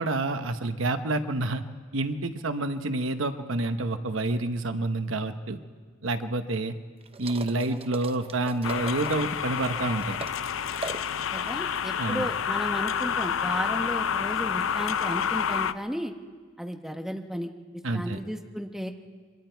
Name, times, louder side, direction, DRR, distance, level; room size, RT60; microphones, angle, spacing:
voice 1, 0.0-1.6 1.9-5.6 6.0-6.7 7.2-10.3 12.0-12.3 17.8-18.2, right 2 dB, 70° right, 9 dB, 1.0 m, -28 dB
sound 1, 7.0-10.4 10.6-12.0, right 3 dB, 30° right, 0.7 m, -40 dB
sound 2, 8.6-15.7, left 7 dB, 70° left, 0.5 m, -29 dB
voice 2, 11.3-16.1 16.6-17.5 17.9-18.9, equal, ahead, 4 dB, 1.1 m, -34 dB
27.5 x 24.0 x 4.6 m, 1.5 s
head